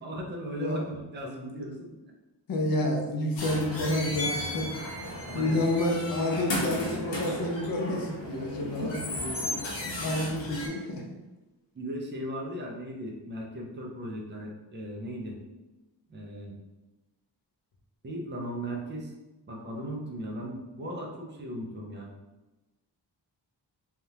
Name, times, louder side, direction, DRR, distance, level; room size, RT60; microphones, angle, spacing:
voice 1, 0.0-2.0 5.3-5.6 8.6-8.9 11.7-15.4 16.1-16.6 18.0-19.1 19.5-22.1, right 1 dB, 25° right, -1 dB, 0.5 m, -37 dB
voice 2, 2.5-4.7 5.3-9.0 9.2-9.5 10.0-11.0, left 1 dB, 50° left, 1 dB, 0.6 m, -29 dB
sound 1, 3.4-10.7, left 1 dB, 85° left, 0.9 m, -35 dB
3.4 x 2.4 x 2.8 m, 1.1 s
wide cardioid pair, 170°, 43 cm